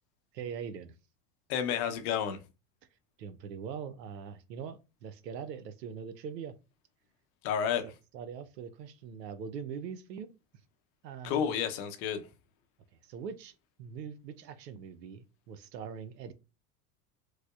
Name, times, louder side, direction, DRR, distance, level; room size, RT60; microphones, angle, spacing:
voice 1, 0.3-0.9 3.2-6.5 7.8-10.3 11.0-11.6 13.1-13.5 13.8-16.3, right 7 dB, 85° right, 0.6 m, -42 dB
voice 2, 1.5-2.4 7.4-7.9 11.2-12.2, left 8 dB, 60° left, 0.7 m, -30 dB
4.8 x 2.1 x 2.3 m
hypercardioid pair, 80°, 48 cm